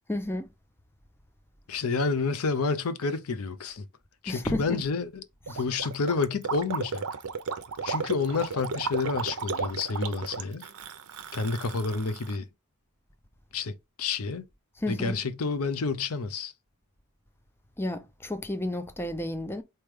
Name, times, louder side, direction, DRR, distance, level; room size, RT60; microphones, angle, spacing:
voice 1, 0.1-0.5 4.3-4.8 5.5-5.6 14.8-15.2 17.8-19.6, left 1 dB, 10° left, 0.5 m, -31 dB
voice 2, 1.7-3.8 4.2-7.0 7.8-10.7 11.3-12.5 13.5-14.4 14.9-16.5, left 4 dB, 70° left, 0.6 m, -29 dB
Gurgling, 5.5-12.4, right 5 dB, 75° right, 0.6 m, -34 dB
4.3 x 3.3 x 3.5 m
head